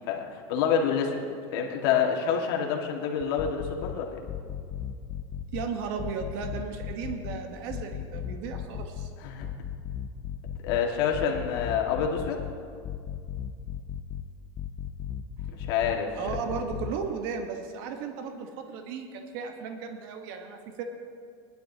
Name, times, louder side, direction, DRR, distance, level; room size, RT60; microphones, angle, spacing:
voice 1, 0.1-1.2 1.5-4.2 9.2-9.5 10.6-12.4 15.5-16.1, left 7 dB, 75° left, 1 dB, 1.8 m, -27 dB
sound 1, 3.2-3.9 4.3-5.7 6.0-7.4 7.7-9.1 9.4-10.8 11.1-12.5 12.8-14.2 14.6-15.9 16.3-16.9, left 10 dB, 25° left, 0.6 m, -35 dB
voice 2, 5.5-9.1 16.1-20.8, right 6 dB, 60° right, 5 dB, 1.2 m, -35 dB
20.0 x 11.5 x 2.8 m, 2.2 s
supercardioid pair, 155°, 13 cm